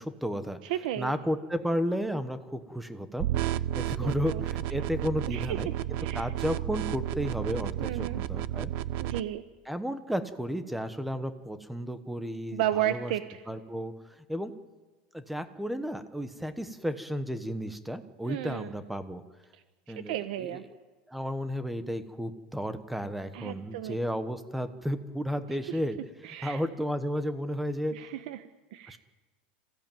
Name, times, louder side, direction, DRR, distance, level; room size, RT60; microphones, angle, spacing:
voice 1, 0.0-0.6 1.0-3.3 3.7-5.7 6.1-8.7 9.7-13.1 13.5-13.9 14.3-14.5 15.1-19.2 19.9-20.6 21.1-26.0 26.3-27.9 28.9-29.0, equal, ahead, 10 dB, 1.1 m, -33 dB
voice 2, 0.6-1.2 4.0-4.4 5.3-5.7 6.0-6.3 7.8-8.2 9.0-9.4 12.5-13.4 18.3-18.7 19.5-20.6 23.3-24.0 25.7-25.8 26.2-26.6 27.9-29.0, right 12 dB, 60° right, 10 dB, 1.1 m, -34 dB
sound 1, 3.2-9.2, right 14 dB, 40° right, 0.6 m, -32 dB
27.0 x 16.5 x 9.1 m, 1.3 s
supercardioid pair, 175°, 5 cm